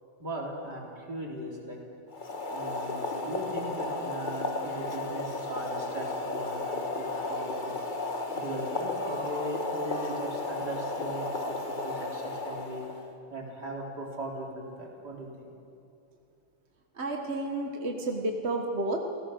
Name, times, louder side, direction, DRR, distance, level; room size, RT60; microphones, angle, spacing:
voice 1, 0.2-1.8 2.5-6.8 7.3-7.7 8.3-12.8 13.3-15.5, right 1 dB, 55° right, -2 dB, 4.2 m, -38 dB
Boiling, 2.1-13.1, left 2 dB, 25° left, 1.3 m, -34 dB
voice 2, 16.9-19.1, right 2 dB, 35° right, 2 dB, 1.5 m, -31 dB
28.5 x 17.5 x 6.5 m, 2.6 s
omnidirectional pair, 2.2 m